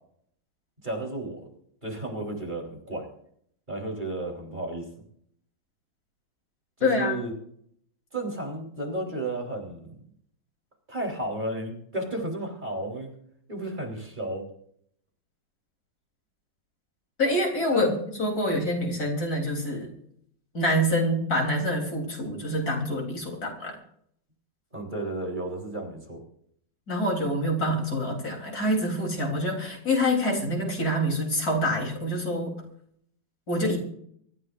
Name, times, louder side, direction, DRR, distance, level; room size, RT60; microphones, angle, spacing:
voice 1, 0.8-1.5 1.8-3.1 3.7-4.9 6.8-7.3 8.1-10.0 10.9-13.1 13.5-14.4 17.7-18.0 24.7-26.2, right 2 dB, 25° right, 0 dB, 4.0 m, -33 dB
voice 2, 6.8-7.1 17.2-17.9 18.2-19.9 20.5-23.8 26.9-32.5 33.5-33.8, equal, 55° left, 1 dB, 4.2 m, -26 dB
25.0 x 14.5 x 2.6 m, 0.66 s
omnidirectional pair, 1.9 m